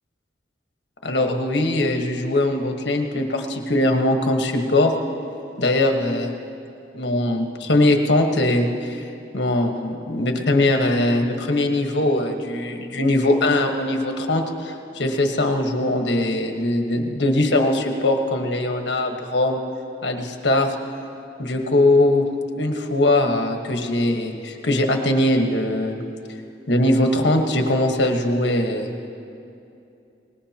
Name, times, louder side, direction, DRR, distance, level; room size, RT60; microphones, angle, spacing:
voice 1, 1.0-4.9 5.6-6.3 6.9-19.6 20.0-20.8 21.4-22.3 22.5-26.0 26.7-29.1, left 1 dB, 70° left, 3 dB, 1.4 m, -21 dB
23.5 x 19.5 x 2.9 m, 2.6 s
head